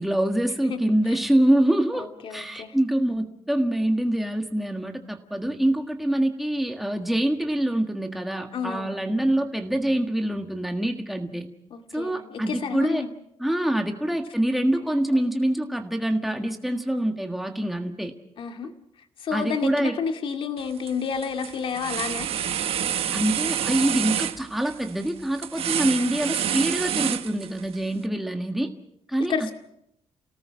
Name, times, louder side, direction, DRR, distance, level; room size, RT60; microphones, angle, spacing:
voice 1, 0.0-11.5 11.9-13.0 13.4-18.1 19.3-19.9 23.1-28.7 29.1-29.5, right 1 dB, ahead, 4 dB, 1.7 m, -25 dB
voice 2, 1.9-2.8 8.5-9.1 11.7-13.1 18.4-18.7 19.2-22.3 29.3-29.5, left 6 dB, 50° left, 5 dB, 2.2 m, -30 dB
sound 1, 20.6-20.9 21.2-27.7, right 9 dB, 60° right, 1.2 m, -28 dB
29.5 x 18.0 x 6.4 m, 0.77 s
cardioid pair, 170°, 11 cm